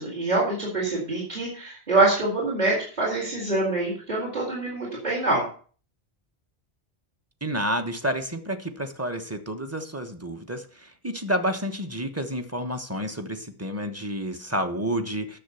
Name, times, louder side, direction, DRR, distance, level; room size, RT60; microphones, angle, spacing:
voice 1, 0.0-5.4, right 2 dB, 40° right, -4 dB, 4.0 m, -25 dB
voice 2, 7.4-15.4, equal, 15° right, 6 dB, 1.2 m, -30 dB
10.0 x 7.2 x 7.0 m, 0.41 s
omnidirectional pair, 1.1 m